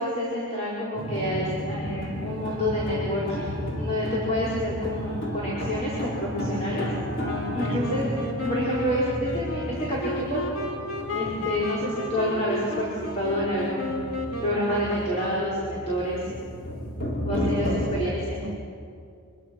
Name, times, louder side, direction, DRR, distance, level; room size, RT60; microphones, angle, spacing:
voice 1, 0.0-6.8 7.5-8.1 8.4-9.0 9.3-10.4 11.1-14.0 14.4-16.2 17.2-18.4, equal, 30° left, -7 dB, 4.9 m, -28 dB
sound 1, 0.9-18.0, equal, 55° left, 5.3 m, -33 dB
Wind instrument woodwind instrument, 7.2-15.6, left 1 dB, 75° left, 3.6 m, -33 dB
voice 2, 7.5-7.9 17.3-17.9 18.4-18.6, right 1 dB, 55° right, 2 dB, 2.5 m, -35 dB
27.5 x 23.0 x 6.3 m, 2.3 s
head